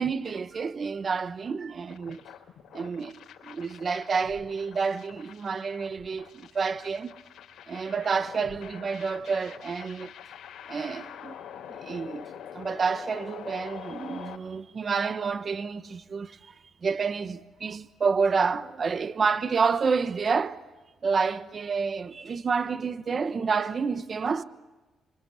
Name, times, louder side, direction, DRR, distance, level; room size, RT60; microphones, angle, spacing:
voice 1, 0.0-2.2 2.7-7.1 7.7-10.1 10.7-11.3 11.8-12.3 12.5-16.5 16.8-20.6 21.0-24.4, right 5 dB, 40° right, 1.1 m, -29 dB
sound 1, 1.9-14.4, left 9 dB, 70° left, 4.3 m, -45 dB
26.5 x 26.5 x 8.3 m
cardioid pair, 90°, 0 cm